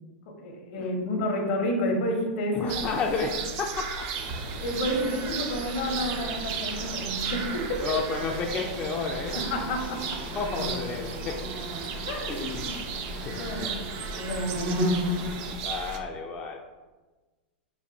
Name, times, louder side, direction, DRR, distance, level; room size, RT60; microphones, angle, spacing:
voice 1, 0.3-2.7 4.6-7.8 9.4-10.2 12.1-12.4 13.4-13.8 14.2-14.8, equal, 65° left, 2 dB, 0.8 m, -30 dB
voice 2, 2.5-4.1 7.8-9.5 10.3-11.4 12.2-12.9 13.1-13.7 15.6-16.6, left 4 dB, 25° left, 1 dB, 0.3 m, -32 dB
sound 1, 2.7-16.0, right 5 dB, 45° right, 0.4 m, -35 dB
sound 2, 4.1-15.5, equal, 60° right, 0.9 m, -35 dB
4.1 x 2.5 x 2.6 m, 1.2 s
hypercardioid pair, 115°, 5 cm